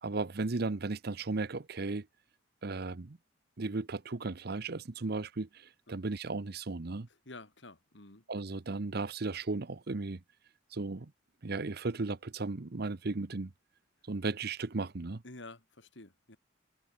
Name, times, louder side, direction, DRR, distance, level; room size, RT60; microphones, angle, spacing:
voice 1, 0.0-2.1 2.6-3.2 3.6-7.1 8.3-10.2 10.7-11.1 11.4-13.5 14.1-15.2, right 3 dB, 55° right, 0.8 m, -35 dB
voice 2, 7.1-8.2 15.2-16.4, left 2 dB, 70° left, 3.0 m, -50 dB
head